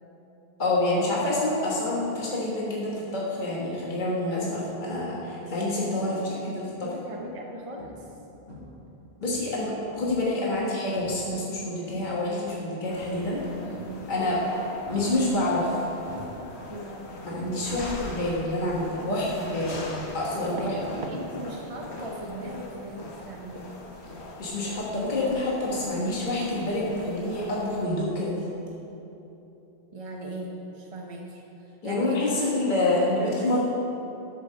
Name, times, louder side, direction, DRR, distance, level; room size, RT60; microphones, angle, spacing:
voice 1, 0.6-6.6 9.2-13.4 14.1-14.4 14.9-15.8 17.2-19.9 20.1-21.0 24.4-28.4 31.8-33.7, left 2 dB, 45° left, -5 dB, 1.7 m, -27 dB
voice 2, 6.1-8.1 13.7-14.0 16.7-17.0 20.6-23.8 29.9-32.4 33.2-33.6, right 1 dB, 35° right, -1 dB, 0.9 m, -39 dB
sound 1, 7.1-7.2 7.8-8.2 8.5-8.9 9.2-10.3 11.0-11.3 11.6-12.5 13.7-14.2 14.8-15.7 16.1-18.0 18.2-18.6 20.7-20.8, left 1 dB, 65° left, 2.8 m, -44 dB
sound 2, 12.9-27.9, left 2 dB, 85° left, 1.6 m, -41 dB
sound 3, 20.5-21.2 21.5-21.9 22.2-22.4 25.3-25.4 25.7-25.9 26.2-26.3, right 3 dB, 80° right, 1.2 m, -41 dB
12.0 x 5.4 x 6.5 m, 3.0 s
omnidirectional pair, 1.1 m